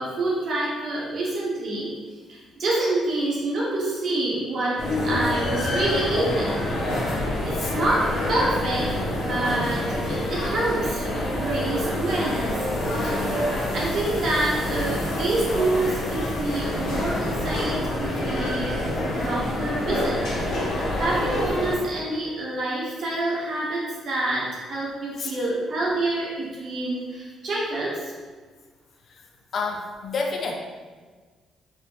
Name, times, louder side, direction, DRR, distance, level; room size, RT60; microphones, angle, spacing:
voice 1, 0.0-1.9 2.3-6.7 7.4-13.4 13.7-18.7 19.2-20.2 21.0-28.1, right 2 dB, 60° right, -5 dB, 1.2 m, -27 dB
sound 1, 4.8-21.8, left 1 dB, 85° left, 0.8 m, -27 dB
sound 2, 8.5-14.1, right 1 dB, 35° right, 0.7 m, -35 dB
voice 2, 13.0-13.4 25.2-25.3 29.1-29.2 29.5-30.5, left 4 dB, 55° left, 1 dB, 0.4 m, -30 dB
4.0 x 2.2 x 3.0 m, 1.4 s
cardioid pair, 90°, 0 cm